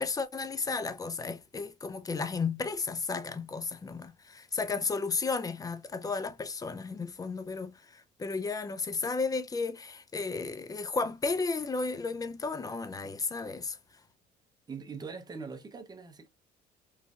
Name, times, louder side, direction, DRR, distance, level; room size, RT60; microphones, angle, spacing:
voice 1, 0.0-13.8, left 4 dB, 20° left, 0.4 m, -33 dB
voice 2, 14.7-16.3, right 5 dB, 25° right, 0.7 m, -42 dB
3.2 x 2.5 x 2.3 m
cardioid pair, 110°, 17 cm